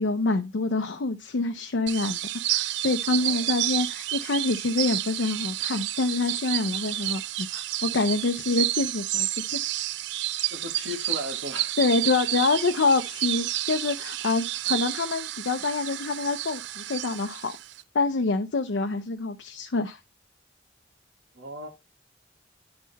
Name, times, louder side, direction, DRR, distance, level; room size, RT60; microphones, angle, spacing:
voice 1, 0.0-2.2 2.5-9.6 11.8-17.5 17.9-20.0, left 3 dB, 75° left, 0.6 m, -26 dB
sound 1, 1.9-17.8, right 15 dB, 70° right, 0.3 m, -30 dB
voice 2, 10.5-11.8 21.3-21.7, left 1 dB, 85° right, 1.7 m, -36 dB
9.5 x 3.8 x 4.1 m
head